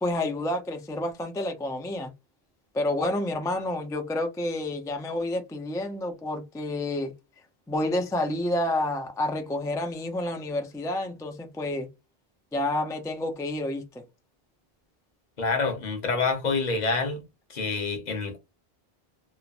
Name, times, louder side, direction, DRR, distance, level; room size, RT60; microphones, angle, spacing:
voice 1, 0.0-2.1 2.7-7.1 7.7-11.9 12.5-13.8, left 1 dB, 5° left, 0.3 m, -29 dB
voice 2, 15.4-17.2 17.5-18.4, left 4 dB, 45° left, 0.9 m, -27 dB
3.0 x 2.1 x 2.5 m
omnidirectional pair, 1.0 m